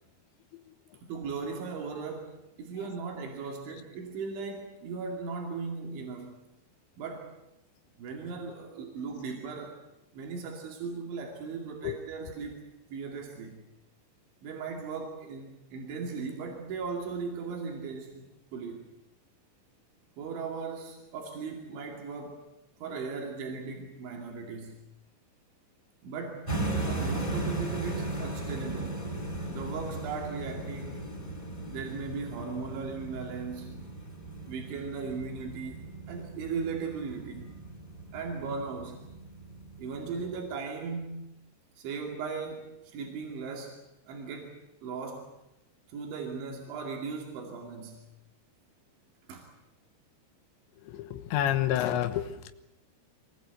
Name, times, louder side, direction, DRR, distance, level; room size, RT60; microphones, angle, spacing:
voice 1, 1.1-6.4 7.0-7.4 8.0-9.8 10.1-12.6 12.9-13.6 14.4-18.8 20.2-22.4 22.8-24.8 26.0-29.0 29.5-31.1 31.7-33.8 34.5-35.8 36.1-37.6 38.1-39.0 39.8-41.3 41.8-43.7 44.1-44.5 44.8-45.3 45.9-48.0 49.3-49.5, right 5 dB, 90° right, 1 dB, 4.9 m, -37 dB
sound 1, 26.5-40.4, right 2 dB, 10° left, 3.5 m, -37 dB
voice 2, 50.8-52.5, left 11 dB, 85° left, 7 dB, 3.5 m, -29 dB
24.5 x 20.0 x 8.2 m, 0.90 s
omnidirectional pair, 5.2 m